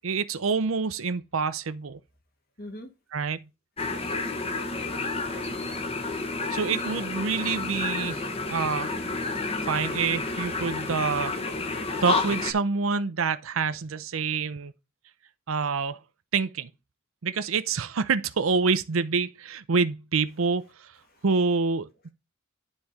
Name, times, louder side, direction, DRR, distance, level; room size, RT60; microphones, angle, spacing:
voice 1, 0.0-2.0 3.1-3.5 6.5-8.9 9.7-11.3 12.0-14.7 15.5-16.0 16.3-16.7 17.2-21.0 21.2-22.1, right 5 dB, 90° right, 0.6 m, -27 dB
voice 2, 2.6-2.9 4.0-4.7 20.3-20.4 21.0-21.5, left 1 dB, 50° left, 2.3 m, -45 dB
sound 1, 3.8-12.5, left 3 dB, 30° left, 1.2 m, -30 dB
9.9 x 4.2 x 4.8 m
head